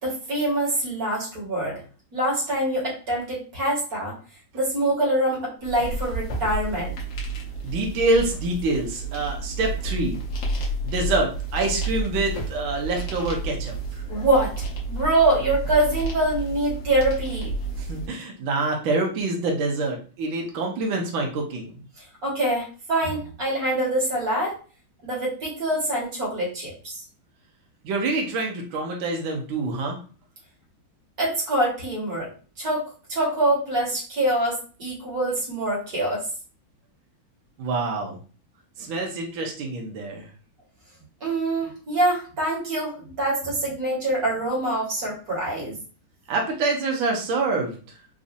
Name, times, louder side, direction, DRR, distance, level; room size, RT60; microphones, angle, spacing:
voice 1, 0.0-1.8 2.1-4.1 4.5-6.9 14.1-14.5 14.9-17.5 22.2-24.5 25.0-26.7 31.2-32.3 32.6-32.8 33.1-36.2 41.2-45.7, right 1 dB, 45° right, -4 dB, 1.9 m, -24 dB
sound 1, 5.6-18.1, right 2 dB, 55° left, 1.0 m, -31 dB
voice 2, 7.6-10.2 10.8-14.0 17.8-21.7 27.8-30.0 37.6-38.2 38.8-40.3 46.3-47.8, right 2 dB, 75° right, 0 dB, 1.6 m, -26 dB
4.1 x 2.6 x 2.6 m, 0.37 s
omnidirectional pair, 2.3 m